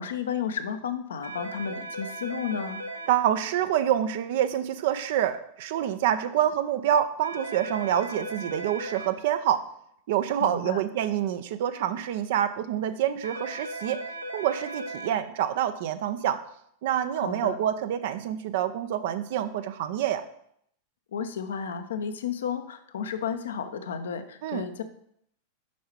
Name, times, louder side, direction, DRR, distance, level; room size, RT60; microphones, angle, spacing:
voice 1, 0.0-2.8 10.4-10.8 17.2-17.6 21.1-24.8, left 7 dB, 65° left, 9 dB, 0.7 m, -32 dB
sound 1, 1.2-3.1 7.2-9.1 13.2-15.1, right 1 dB, 80° right, 0.9 m, -37 dB
voice 2, 3.1-9.6 10.1-14.0 14.3-16.4 16.8-20.2 24.4-24.6, right 10 dB, 55° right, 10 dB, 0.5 m, -27 dB
7.3 x 5.6 x 4.4 m, 0.69 s
figure-of-eight pair, 90°, 0 cm